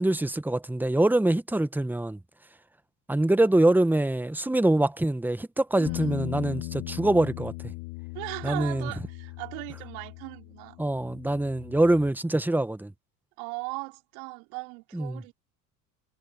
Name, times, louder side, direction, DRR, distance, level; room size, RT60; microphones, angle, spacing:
voice 1, 0.0-2.2 3.1-7.7 8.4-8.9 10.8-12.9 14.9-15.2, right 1 dB, 5° right, 1.4 m, -24 dB
voice 2, 5.7-6.2 8.1-10.8 13.4-15.4, right 32 dB, 65° right, 4.8 m, -38 dB
Bass guitar, 5.9-12.1, left 21 dB, 60° left, 3.0 m, -38 dB
hypercardioid pair, 80°, 46 cm